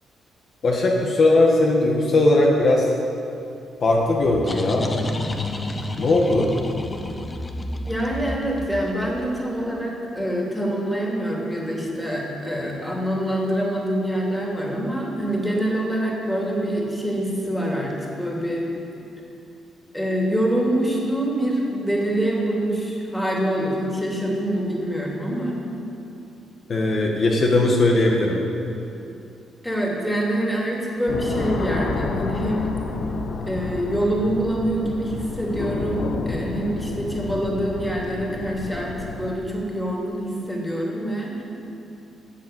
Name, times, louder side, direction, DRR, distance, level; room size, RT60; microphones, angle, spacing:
voice 1, 0.6-2.9 3.8-4.9 6.0-6.5 26.7-28.4, left 2 dB, 50° left, -1 dB, 1.6 m, -19 dB
sound 1, 4.0-9.5, left 2 dB, 25° left, 1.0 m, -30 dB
voice 2, 7.8-18.7 19.9-25.6 29.6-32.8 33.5-41.4, right 1 dB, 5° left, -2 dB, 3.0 m, -25 dB
sound 2, 31.1-39.3, left 4 dB, 65° left, 1.1 m, -30 dB
13.0 x 7.4 x 8.1 m, 2.7 s
cardioid pair, 90°, 0 cm